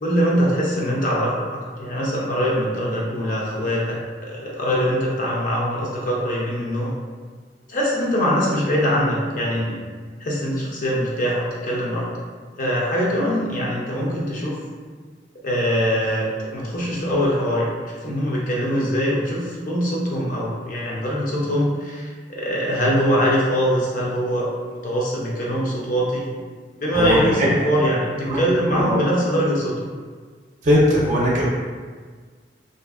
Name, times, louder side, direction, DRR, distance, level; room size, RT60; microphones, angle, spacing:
voice 1, 0.0-6.9 7.7-9.8 10.2-12.1 12.6-14.6 15.4-16.2 16.5-26.3 26.7-29.9, equal, 50° left, -4 dB, 0.6 m, -23 dB
voice 2, 26.9-27.5 28.3-28.4 28.6-29.0 30.6-31.5, equal, 45° right, -6 dB, 0.5 m, -19 dB
2.5 x 2.5 x 2.4 m, 1.5 s
head